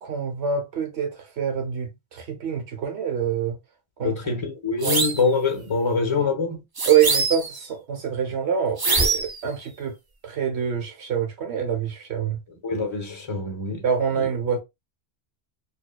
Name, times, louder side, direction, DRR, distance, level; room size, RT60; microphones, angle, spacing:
voice 1, 0.0-3.6 4.0-4.3 4.8-5.0 6.2-6.3 6.8-9.9 10.2-12.4 13.8-14.6, right 8 dB, 80° right, 1.3 m, -25 dB
voice 2, 4.0-6.6 12.6-13.8 14.2-14.3, left 4 dB, 30° left, 1.1 m, -25 dB
sound 1, 4.8-5.3 6.8-7.6 8.8-9.4, right 3 dB, 30° right, 0.4 m, -23 dB
4.7 x 2.7 x 2.3 m
omnidirectional pair, 1.1 m